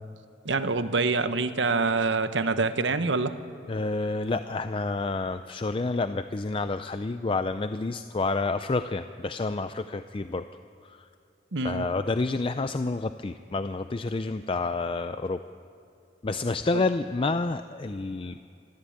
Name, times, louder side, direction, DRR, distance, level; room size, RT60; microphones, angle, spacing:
voice 1, 0.4-3.3 11.5-11.9, right 3 dB, 80° right, 11 dB, 1.0 m, -25 dB
voice 2, 3.7-10.5 10.8-11.1 11.6-15.4 16.2-18.5, left 3 dB, 30° left, 10 dB, 0.4 m, -29 dB
25.0 x 13.5 x 8.6 m, 2.5 s
head